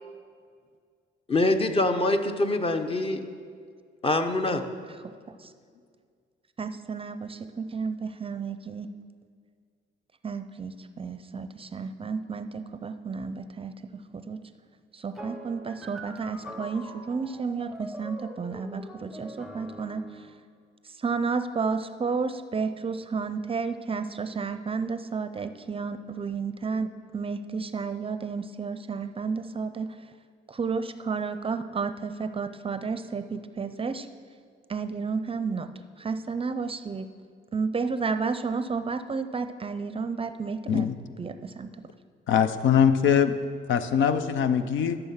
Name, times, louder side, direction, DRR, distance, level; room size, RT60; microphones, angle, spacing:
voice 1, 1.3-3.2 4.0-4.6, left 2 dB, 30° left, 7 dB, 0.9 m, -24 dB
voice 2, 6.6-8.9 10.2-14.4 14.9-20.0 21.0-26.9 27.1-29.9 30.5-34.1 34.7-35.7 36.0-37.1 37.5-40.9 41.2-41.9, right 5 dB, 30° right, 11 dB, 0.5 m, -32 dB
sound 1, 15.1-20.4, equal, ahead, 0.8 m, -43 dB
voice 3, 42.3-43.3 43.7-45.0, left 8 dB, 75° left, 10 dB, 0.6 m, -22 dB
13.0 x 6.8 x 5.8 m, 2.1 s
cardioid pair, 90°, 20 cm